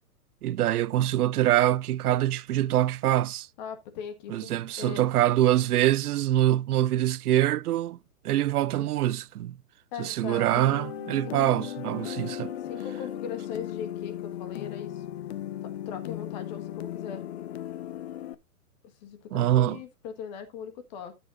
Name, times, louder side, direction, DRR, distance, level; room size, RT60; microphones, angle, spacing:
voice 1, 0.4-3.5 4.3-8.0 8.2-9.5 10.0-12.5 19.3-19.8, right 13 dB, 80° right, 0.6 m, -24 dB
voice 2, 3.6-5.0 8.7-8.9 9.9-10.6 11.3-11.4 12.6-15.0 15.6-17.2 19.0-21.1, left 7 dB, 30° left, 1.6 m, -39 dB
sound 1, 10.5-18.3, left 11 dB, 45° left, 0.7 m, -36 dB
13.5 x 7.1 x 2.6 m
hypercardioid pair, 165°, 45 cm